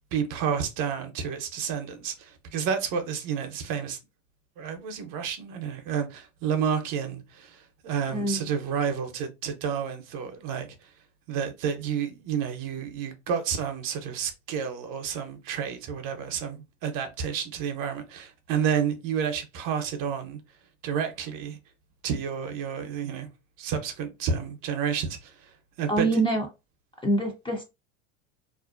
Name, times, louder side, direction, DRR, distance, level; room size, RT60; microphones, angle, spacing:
voice 1, 0.1-4.0 4.6-10.7 11.3-20.4 20.8-21.6 22.0-23.3 23.6-25.5 25.8-26.2, right 7 dB, 50° right, 0.7 m, -30 dB
voice 2, 8.1-8.5 25.9-26.5 27.0-27.6, right 2 dB, 15° left, 0.5 m, -25 dB
2.5 x 2.1 x 2.4 m
hypercardioid pair, 95°, 42 cm